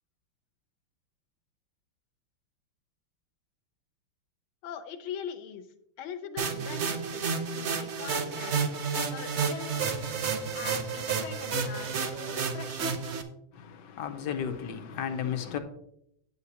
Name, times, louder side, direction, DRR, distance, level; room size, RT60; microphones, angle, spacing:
voice 1, 4.6-5.7 6.0-10.1 10.5-13.0, left 8 dB, 80° left, 1.7 m, -42 dB
sound 1, 6.4-13.2, right 5 dB, 80° right, 0.6 m, -31 dB
voice 2, 13.5-15.6, left 8 dB, 65° left, 1.3 m, -34 dB
9.4 x 8.4 x 2.9 m
omnidirectional pair, 2.3 m